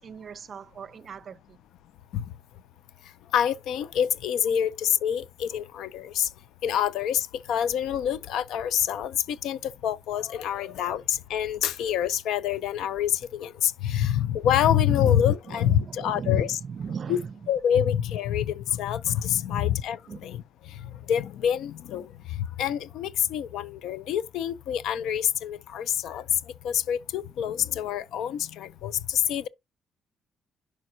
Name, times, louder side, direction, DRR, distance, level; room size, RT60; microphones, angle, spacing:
voice 1, 0.0-1.6 15.0-15.2 15.5-17.4 19.5-19.7 20.1-20.2, right 6 dB, 50° right, 0.5 m, -38 dB
voice 2, 3.3-6.3 6.6-16.6 17.1-17.2 17.5-20.8 21.1-26.2 26.6-29.5, left 10 dB, 85° left, 0.5 m, -26 dB
11.0 x 5.2 x 2.8 m
cardioid pair, 90°, 0 cm